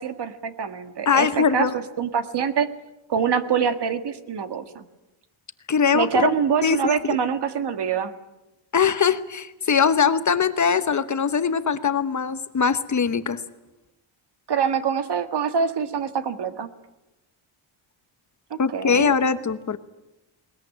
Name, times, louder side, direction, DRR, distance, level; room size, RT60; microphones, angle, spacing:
voice 1, 0.0-1.7 2.0-2.7 3.1-4.8 5.9-8.1 14.5-16.7 18.5-19.1, right 6 dB, 55° right, 10 dB, 1.7 m, -25 dB
voice 2, 1.1-1.7 5.7-6.3 6.6-7.2 8.7-13.4 18.6-19.8, left 6 dB, 35° left, 11 dB, 1.1 m, -21 dB
21.0 x 20.0 x 10.0 m, 0.97 s
wide cardioid pair, 145°, 48 cm